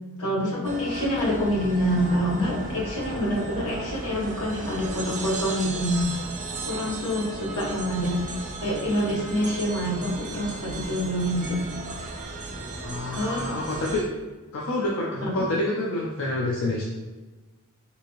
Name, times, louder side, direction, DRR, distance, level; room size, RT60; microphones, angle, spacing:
voice 1, 0.2-6.1 6.7-8.2 8.6-11.6 13.1-13.5 15.2-15.4, equal, 85° left, -4 dB, 1.0 m, -26 dB
sound 1, 0.6-14.0, right 2 dB, 35° right, 0.4 m, -35 dB
voice 2, 12.8-14.0 14.5-16.8, left 2 dB, 65° left, -3 dB, 0.5 m, -27 dB
3.4 x 2.8 x 2.9 m, 1.2 s
head